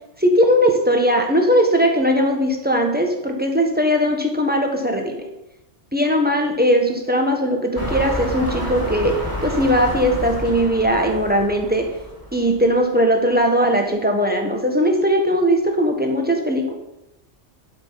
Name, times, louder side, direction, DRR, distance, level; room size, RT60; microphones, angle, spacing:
voice 1, 0.2-5.2 5.9-11.9 12.3-16.7, equal, 10° right, 2 dB, 1.2 m, -19 dB
sound 1, 7.7-12.7 13.4-13.5, left 1 dB, 15° left, 2.2 m, -29 dB
11.0 x 5.4 x 5.7 m, 0.93 s
omnidirectional pair, 1.3 m